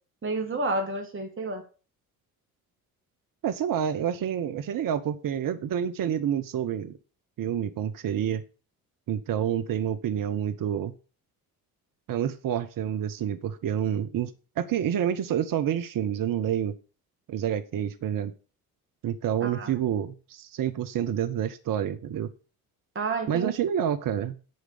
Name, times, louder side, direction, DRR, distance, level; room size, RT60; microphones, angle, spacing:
voice 1, 0.2-1.6 19.4-19.7 23.0-23.5, right 3 dB, 25° right, 3 dB, 2.0 m, -30 dB
voice 2, 3.4-7.0 7.4-8.4 9.1-10.9 12.1-16.7 17.3-18.3 19.0-22.3 23.3-24.4, right 9 dB, 45° right, 11 dB, 1.0 m, -28 dB
10.5 x 4.8 x 6.8 m, 0.36 s
hypercardioid pair, 50°, 45 cm